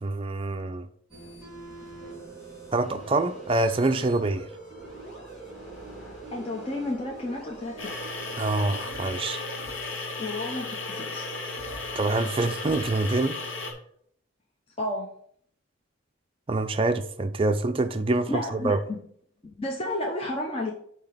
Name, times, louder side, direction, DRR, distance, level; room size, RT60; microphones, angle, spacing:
voice 1, 0.0-0.9 2.7-4.5 8.4-9.4 12.0-13.4 16.5-18.8, right 2 dB, 25° right, 0.4 m, -26 dB
sound 1, 1.1-9.1, right 3 dB, ahead, 3.3 m, -43 dB
voice 2, 6.3-7.9 10.2-11.3 14.8-15.1 18.3-19.0 19.4-20.7, left 1 dB, 30° left, 0.8 m, -31 dB
sound 2, 7.8-13.7, left 3 dB, 70° left, 1.4 m, -34 dB
8.6 x 2.9 x 5.9 m
head